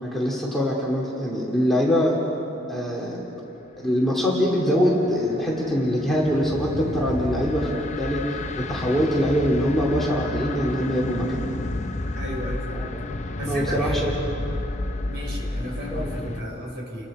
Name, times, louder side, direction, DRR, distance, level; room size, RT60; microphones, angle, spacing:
voice 1, 0.0-2.2 2.7-3.2 3.8-11.4 12.7-12.9 13.5-14.1 15.9-16.1, equal, ahead, -4 dB, 2.5 m, -23 dB
sound 1, 4.7-16.4, left 2 dB, 35° left, 0.7 m, -31 dB
voice 2, 12.1-13.0 13.4-14.1 15.1-17.1, equal, 50° right, -2 dB, 5.4 m, -34 dB
30.0 x 22.0 x 4.9 m, 2.9 s
head